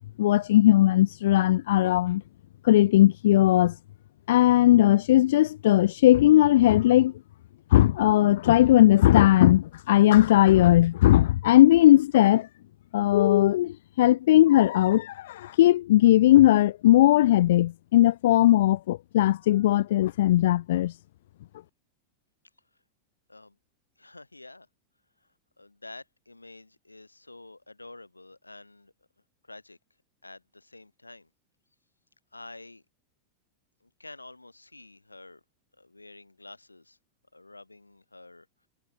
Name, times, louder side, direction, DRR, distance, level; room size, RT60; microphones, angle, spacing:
voice 1, 0.2-2.2 2.6-3.8 4.3-7.1 7.7-12.5 12.9-21.0, left 14 dB, 55° left, 0.3 m, -19 dB
voice 2, 24.0-24.7 25.6-28.9 29.4-29.8 30.2-31.3 32.3-32.8 33.8-35.4 35.8-37.0 37.3-38.5, left 2 dB, 85° left, 3.0 m, -48 dB
figure-of-eight pair, 90°, 0 cm